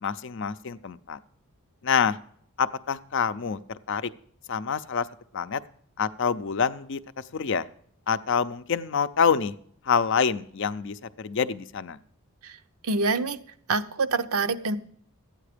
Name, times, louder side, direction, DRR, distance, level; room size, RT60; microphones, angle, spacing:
voice 1, 0.0-1.2 1.8-2.2 2.6-3.6 3.9-4.1 4.5-5.1 5.3-5.6 6.0-7.7 8.1-9.5 9.9-12.0, left 6 dB, 55° left, 12 dB, 0.5 m, -26 dB
voice 2, 12.8-13.4 13.7-14.8, right 3 dB, 80° right, 10 dB, 0.7 m, -26 dB
13.0 x 9.0 x 5.0 m, 0.63 s
head